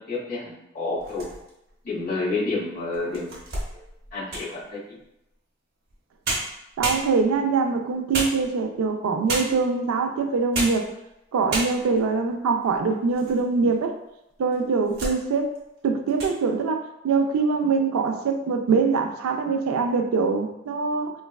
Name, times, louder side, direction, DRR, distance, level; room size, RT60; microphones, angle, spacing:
voice 1, 0.1-1.2 1.8-3.3 4.1-5.0, left 3 dB, 40° left, -8 dB, 1.1 m, -29 dB
sound 1, 1.0-1.7 2.3-2.4 2.9-4.6 5.9-6.0 6.2-7.5 8.1-8.8 9.3-9.7 10.4-10.9 11.2-11.3 11.5-12.1 12.6-13.4 13.7-13.8 14.5-15.2 15.6-15.8 16.1-16.4, right 2 dB, 50° right, 0.7 m, -31 dB
voice 2, 6.8-10.8 11.3-13.9 14.4-15.5 15.8-21.1, right 4 dB, 90° right, 4 dB, 0.3 m, -23 dB
3.1 x 2.2 x 2.3 m, 0.86 s
head